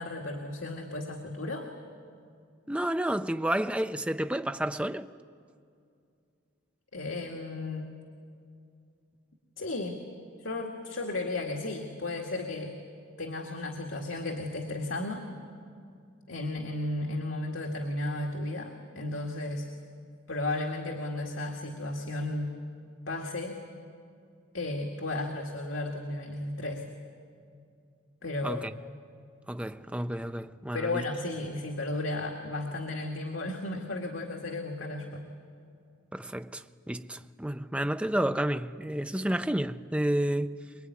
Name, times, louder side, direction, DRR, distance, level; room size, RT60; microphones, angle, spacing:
voice 1, 0.0-1.7 6.9-7.9 9.6-10.0 10.4-12.7 13.2-15.3 16.3-19.7 20.3-22.6 23.1-23.6 24.5-26.9 28.2-28.6 30.7-35.3, left 2 dB, 80° left, 2.0 m, -34 dB
voice 2, 2.7-5.1 28.4-28.7 29.5-31.1 36.1-40.6, right 1 dB, 5° right, 0.5 m, -30 dB
24.0 x 22.0 x 9.5 m
head